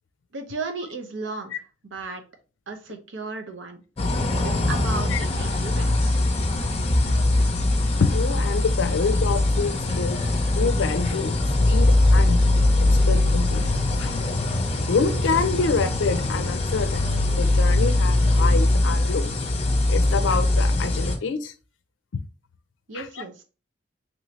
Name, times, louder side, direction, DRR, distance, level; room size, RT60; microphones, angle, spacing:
voice 1, 0.3-2.2 2.7-3.8 4.4-6.2 22.9-23.4, right 3 dB, 75° right, 6 dB, 0.6 m, -35 dB
sound 1, 4.0-21.2, left 2 dB, 30° left, 0.6 m, -21 dB
voice 2, 8.0-10.2 10.5-11.4 11.7-12.4 12.8-13.7 14.0-14.1 14.9-19.3 19.9-21.5 22.9-23.2, left 4 dB, 80° left, 10 dB, 0.4 m, -27 dB
3.1 x 2.6 x 3.1 m, 0.35 s
head